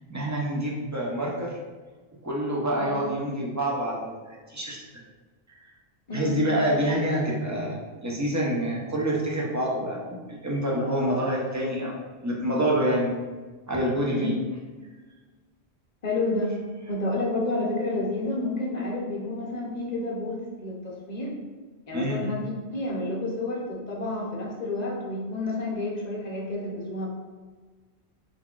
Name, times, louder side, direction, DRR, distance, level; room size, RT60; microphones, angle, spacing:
voice 1, 0.1-1.6 2.2-4.1 4.5-4.8 6.1-11.9 12.2-13.2 13.7-14.3 21.9-22.2, right 1 dB, 25° right, -3 dB, 0.4 m, -27 dB
voice 2, 6.1-6.4 14.2-14.3 16.0-16.6 16.9-21.4 21.9-27.1, left 2 dB, 45° left, -3 dB, 0.7 m, -30 dB
3.8 x 3.5 x 2.3 m, 1.4 s
omnidirectional pair, 1.1 m